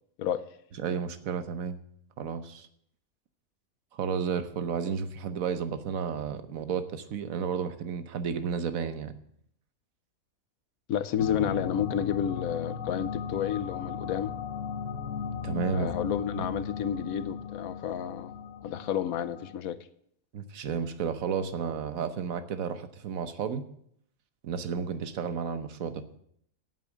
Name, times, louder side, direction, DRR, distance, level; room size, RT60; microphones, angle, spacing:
voice 1, 0.8-1.8 2.2-2.7 3.9-9.1 15.4-15.9 16.4-16.5 20.3-23.6 24.4-26.0, right 6 dB, 75° right, 1.3 m, -32 dB
voice 2, 10.9-14.3 15.7-18.3 18.6-19.8, left 9 dB, 85° left, 1.2 m, -31 dB
sound 1, 11.2-19.6, left 6 dB, 65° left, 1.2 m, -36 dB
8.5 x 8.2 x 8.3 m
omnidirectional pair, 1.5 m